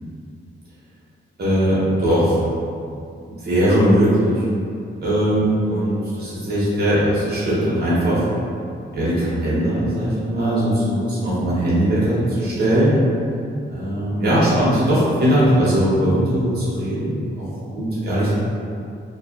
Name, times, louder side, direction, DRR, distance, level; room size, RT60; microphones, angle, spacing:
voice 1, 1.4-2.4 3.4-4.4 5.0-8.3 8.9-13.0 13.7-17.4 17.7-18.3, right 1 dB, 55° right, -10 dB, 0.8 m, -19 dB
2.5 x 2.4 x 2.4 m, 2.5 s
wide cardioid pair, 110°, 20 cm